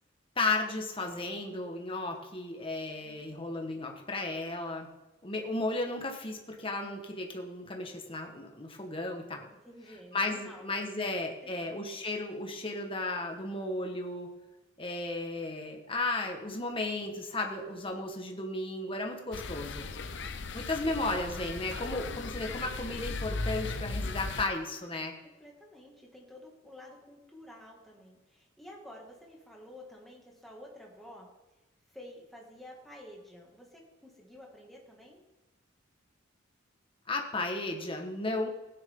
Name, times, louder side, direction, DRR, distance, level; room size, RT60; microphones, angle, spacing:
voice 1, 0.3-4.9 5.2-9.5 10.1-14.3 14.8-19.9 20.5-25.1 37.1-38.5, left 2 dB, 25° left, 2 dB, 1.5 m, -34 dB
voice 2, 9.6-10.7 10.9-11.1 11.4-12.1 20.8-21.2 25.2-31.3 31.9-35.2, left 1 dB, ahead, -3 dB, 2.3 m, -51 dB
sound 1, 19.3-24.5, left 3 dB, 60° left, 0.7 m, -37 dB
16.0 x 9.9 x 3.8 m, 1.1 s
head